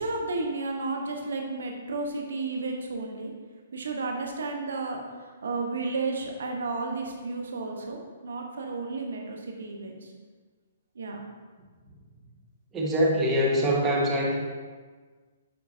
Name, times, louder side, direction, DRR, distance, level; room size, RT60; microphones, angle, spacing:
voice 1, 0.0-3.3 3.7-10.1 10.9-11.2, right 3 dB, 75° right, 2 dB, 1.1 m, -32 dB
voice 2, 12.7-14.4, equal, 15° right, -4 dB, 1.4 m, -24 dB
10.5 x 4.6 x 2.7 m, 1.4 s
hypercardioid pair, 130°, 0 cm